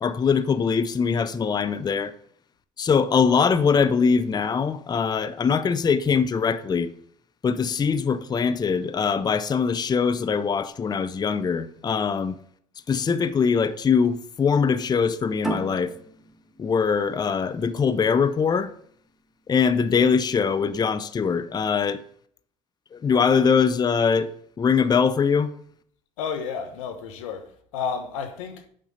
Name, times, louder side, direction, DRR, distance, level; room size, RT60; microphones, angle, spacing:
voice 1, 0.0-2.1 2.8-6.9 7.4-12.4 12.9-15.9 16.6-18.7 19.5-22.0 22.9-25.5, left 6 dB, 25° left, 0.6 m, -22 dB
sound 1, 15.4-18.6, right 2 dB, ahead, 2.1 m, -35 dB
voice 2, 26.2-28.7, left 6 dB, 85° left, 1.1 m, -31 dB
7.6 x 5.2 x 6.5 m
hypercardioid pair, 80°, 16 cm